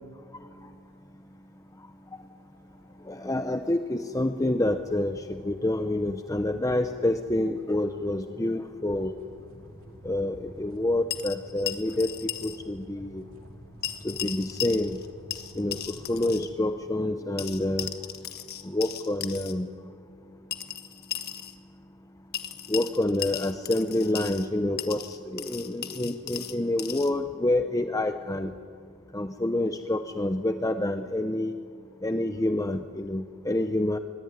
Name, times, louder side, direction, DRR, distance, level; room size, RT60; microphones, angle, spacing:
sound 1, 2.2-16.5, equal, 65° right, 2.8 m, -51 dB
voice 1, 3.1-9.1 10.0-12.1 12.4-13.2 14.0-15.0 15.6-17.9 18.6-19.7 22.7-28.5 29.1-31.5 32.0-34.0, left 1 dB, 15° left, 8 dB, 0.7 m, -27 dB
sound 2, 11.1-12.6 12.8-12.9 13.8-15.1 15.3-16.5 17.4-19.5 20.5-21.5 22.3-24.5 24.8-27.1, left 10 dB, 45° left, 1.5 m, -36 dB
24.0 x 22.0 x 9.7 m, 2.3 s
head